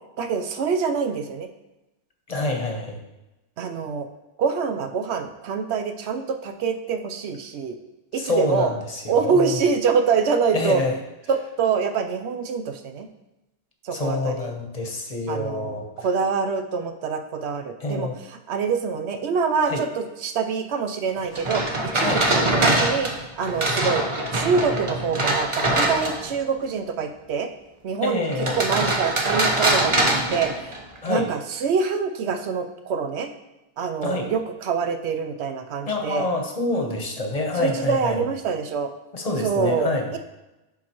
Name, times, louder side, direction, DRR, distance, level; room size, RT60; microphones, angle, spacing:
voice 1, 0.2-1.5 3.6-4.1 4.4-7.8 8.1-8.7 9.1-10.8 11.3-13.1 13.8-14.5 15.3-18.1 18.5-23.1 23.4-24.0 24.3-27.5 27.8-30.7 31.1-33.3 33.8-36.3 37.6-38.9 39.4-40.2, right 5 dB, 75° right, 6 dB, 0.9 m, -25 dB
voice 2, 2.3-3.0 8.1-9.6 10.5-10.9 13.9-15.9 17.8-18.2 19.6-19.8 21.9-22.2 28.0-28.6 31.0-31.3 34.0-34.3 35.9-38.3 39.1-40.1, left 2 dB, 35° left, 2 dB, 0.9 m, -27 dB
sound 1, 21.3-26.4 28.3-31.1, right 1 dB, 30° right, 0.8 m, -23 dB
10.5 x 3.9 x 2.9 m, 0.97 s
omnidirectional pair, 1.2 m